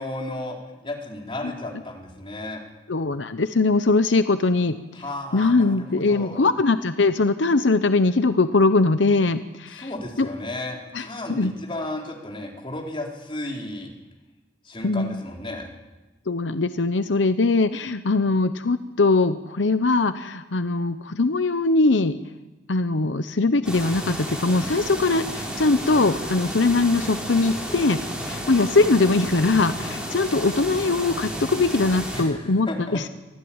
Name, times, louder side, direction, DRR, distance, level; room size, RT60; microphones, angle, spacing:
voice 1, 0.0-2.6 4.9-6.4 9.7-13.9 14.6-15.7 32.1-33.1, left 1 dB, 30° left, 0 dB, 4.1 m, -34 dB
voice 2, 2.9-4.8 5.3-9.9 10.2-10.3 10.9-11.5 14.8-15.2 16.3-22.2 22.7-33.1, left 3 dB, 85° left, 11 dB, 0.9 m, -21 dB
sound 1, 23.6-32.2, equal, 5° right, 5.3 m, -32 dB
24.5 x 15.0 x 8.9 m, 1.1 s
head